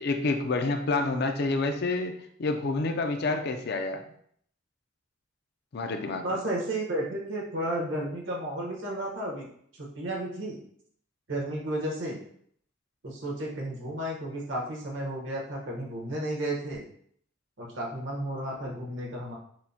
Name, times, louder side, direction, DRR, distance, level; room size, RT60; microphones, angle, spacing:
voice 1, 0.0-4.0 5.7-6.4, left 3 dB, 55° left, 6 dB, 0.4 m, -28 dB
voice 2, 6.2-9.5 9.7-10.6 11.3-12.2 13.0-16.8 17.6-19.4, right 1 dB, 75° right, -1 dB, 1.1 m, -33 dB
6.3 x 2.1 x 2.7 m, 0.64 s
head